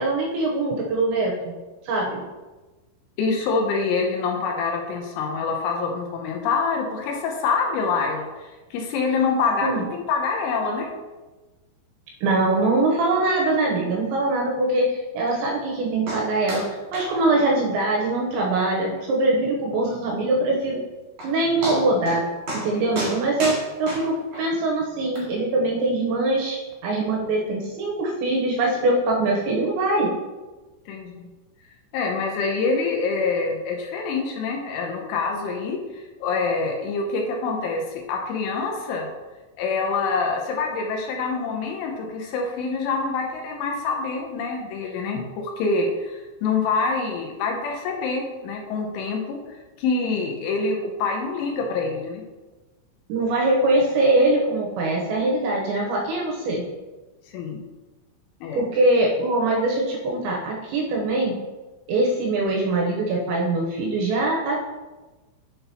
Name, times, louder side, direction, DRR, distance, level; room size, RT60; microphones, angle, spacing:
voice 1, 0.0-1.6 1.8-2.2 9.6-9.8 12.2-16.6 16.9-20.8 21.2-22.2 22.5-30.1 53.1-56.6 58.5-61.4 61.9-64.6, right 2 dB, 75° right, -1 dB, 2.9 m, -22 dB
voice 2, 3.2-10.9 22.7-22.8 30.9-31.2 31.9-35.8 36.2-39.1 39.6-49.4 49.8-52.2 57.3-57.6 58.4-58.6, left 4 dB, 80° left, 1 dB, 3.2 m, -26 dB
sound 1, 16.1-16.2 16.5-16.7 16.9-17.1 17.4-17.5 17.9-18.0 18.4-18.5 19.0-19.1 20.7-20.8 21.2-21.3 21.6-22.2 22.5-22.7 22.9-24.4 25.1-25.2, right 1 dB, 40° right, 2.7 m, -30 dB
8.6 x 6.8 x 2.9 m, 1.2 s
omnidirectional pair, 5.9 m